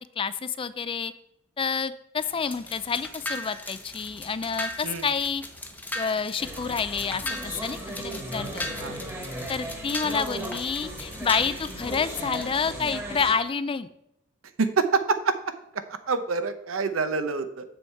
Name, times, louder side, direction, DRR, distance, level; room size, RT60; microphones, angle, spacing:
voice 1, 0.2-1.1 1.6-5.4 6.0-8.7 9.5-13.9, left 5 dB, 25° left, 14 dB, 0.4 m, -28 dB
sound 1, 2.2-12.6, left 1 dB, 10° left, 0.9 m, -38 dB
sound 2, 6.4-13.3, right 1 dB, 10° right, 1.6 m, -37 dB
voice 2, 14.6-15.3 16.1-17.6, right 4 dB, 75° right, 10 dB, 0.8 m, -26 dB
7.2 x 6.9 x 4.6 m, 0.80 s
head